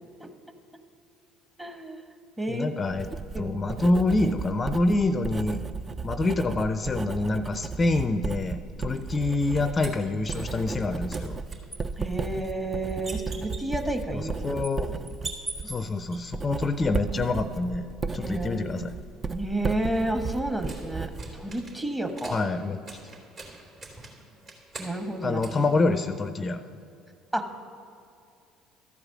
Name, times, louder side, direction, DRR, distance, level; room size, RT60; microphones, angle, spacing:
voice 1, 1.6-2.0 2.4-2.7 3.3-3.5 8.8-8.9 12.0-14.6 18.2-18.7 19.3-22.4 24.8-25.4 27.3-27.4, right 1 dB, 15° right, 5 dB, 1.3 m, -31 dB
voice 2, 2.5-3.1 3.4-5.6 6.0-11.4 14.1-14.9 15.6-17.9 18.1-18.9 22.3-22.8 25.2-26.6, left 2 dB, 30° left, 10 dB, 0.5 m, -26 dB
Writing, 2.9-21.7, right 4 dB, 30° right, 0.5 m, -35 dB
sound 1, 9.0-10.8 11.1-16.2 19.0-26.5, right 3 dB, 50° right, 3.1 m, -44 dB
13.5 x 4.9 x 7.6 m, 2.6 s
hypercardioid pair, 65°, 0 cm